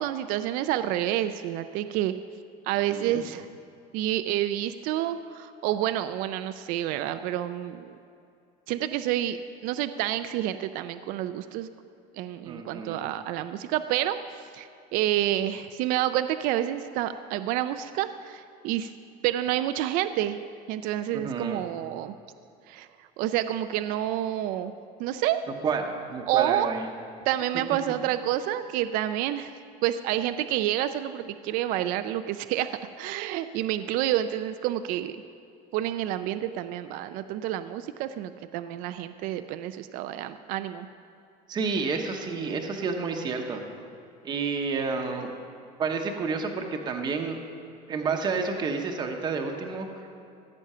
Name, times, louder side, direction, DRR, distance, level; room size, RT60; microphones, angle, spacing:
voice 1, 0.0-2.1 2.6-3.5 3.9-8.0 8.7-9.4 9.6-11.7 12.1-14.2 14.5-18.9 19.2-20.4 20.7-22.1 22.7-22.9 23.2-24.7 25.0-25.4 26.3-26.7 27.3-29.5 29.8-32.7 33.0-35.2 35.7-40.9, right 12 dB, 55° right, 11 dB, 0.4 m, -28 dB
voice 2, 2.7-3.2 12.4-13.0 21.1-21.6 25.5-26.9 27.9-28.0 41.5-43.6 44.2-45.3 45.8-47.4 47.9-50.1, right 4 dB, 25° right, 3 dB, 0.9 m, -30 dB
16.0 x 8.4 x 5.6 m, 2.6 s
cardioid pair, 165°, 17 cm